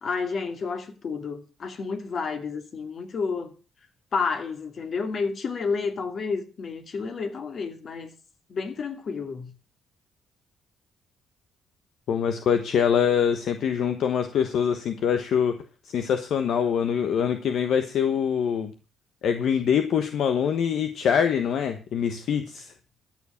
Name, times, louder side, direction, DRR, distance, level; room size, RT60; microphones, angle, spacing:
voice 1, 0.0-3.5 4.1-8.1 8.5-9.5, left 5 dB, 50° left, 2.5 m, -30 dB
voice 2, 12.1-18.7 19.2-22.7, left 7 dB, 70° left, 1.1 m, -24 dB
13.0 x 7.3 x 7.1 m
cardioid pair, 90°, 0 cm